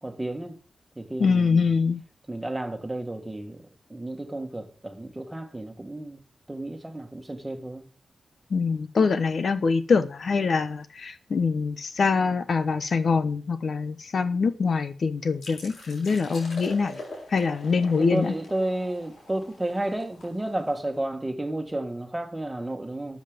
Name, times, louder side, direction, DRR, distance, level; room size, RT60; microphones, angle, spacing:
voice 1, 0.0-0.6 1.0-1.7 2.3-3.6 3.9-6.2 6.5-7.9 17.9-23.2, right 1 dB, 10° right, 1.8 m, -32 dB
voice 2, 1.2-2.0 8.5-17.0 17.3-18.3, left 5 dB, 55° left, 1.0 m, -24 dB
sound 1, 15.4-20.9, left 1 dB, 80° left, 6.2 m, -43 dB
13.5 x 7.6 x 5.2 m
wide cardioid pair, 145°, 0 cm